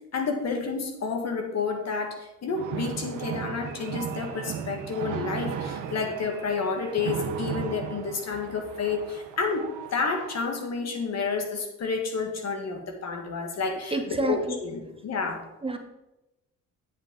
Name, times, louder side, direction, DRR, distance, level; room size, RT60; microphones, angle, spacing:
voice 1, 0.1-15.4, left 4 dB, 60° left, 3 dB, 1.7 m, -30 dB
sound 1, 2.5-10.6, right 8 dB, 80° right, 0.9 m, -36 dB
voice 2, 13.9-14.6 15.6-15.8, right 2 dB, 20° right, 5 dB, 1.0 m, -28 dB
8.3 x 7.8 x 3.8 m, 0.94 s
cardioid pair, 90°, 30 cm